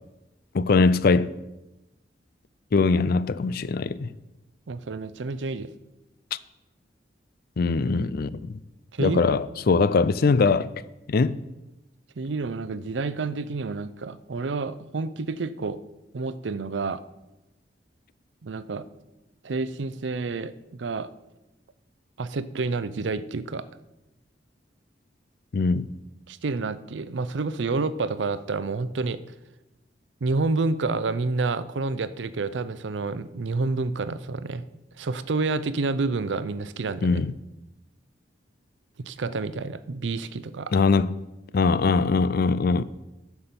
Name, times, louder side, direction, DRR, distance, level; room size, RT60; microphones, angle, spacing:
voice 1, 0.5-1.3 2.7-4.1 6.3-6.4 7.6-8.6 9.0-10.7 11.1-11.4 25.5-25.9 37.0-37.3 40.7-41.1 41.5-42.8, left 4 dB, 55° left, 0.4 m, -21 dB
voice 2, 4.7-5.7 8.9-9.4 12.2-15.8 16.1-17.0 18.4-18.8 19.4-21.1 22.2-23.6 26.3-29.2 30.2-34.6 35.0-37.2 39.0-40.7, right 3 dB, 90° right, 0.6 m, -29 dB
9.8 x 5.9 x 6.8 m
head